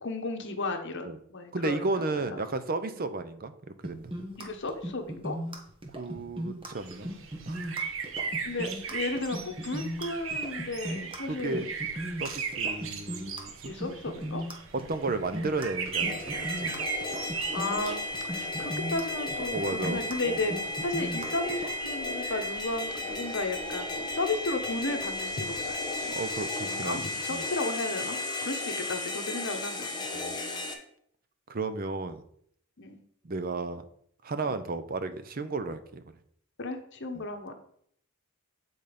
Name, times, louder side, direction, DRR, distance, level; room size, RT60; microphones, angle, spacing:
voice 1, 0.0-2.4 4.4-5.3 8.4-11.7 13.6-14.4 17.5-18.0 18.2-19.6 19.8-26.2 26.6-30.0 32.8-33.0 34.4-34.6 36.6-37.5, left 2 dB, 55° left, 6 dB, 1.0 m, -34 dB
voice 2, 1.5-4.3 5.9-7.1 7.5-7.7 11.3-11.6 12.2-13.7 14.9-16.7 19.5-20.4 26.1-27.5 30.1-30.6 31.5-32.2 33.2-33.8 34.2-36.0 37.1-37.2, right 3 dB, 45° right, 11 dB, 0.6 m, -34 dB
sound 1, 3.8-21.7, equal, 25° right, 1.2 m, -37 dB
sound 2, 6.8-26.4, right 5 dB, 65° right, 1.1 m, -39 dB
sound 3, 15.9-30.7, left 2 dB, 20° left, 1.1 m, -34 dB
8.9 x 4.0 x 5.1 m, 0.66 s
head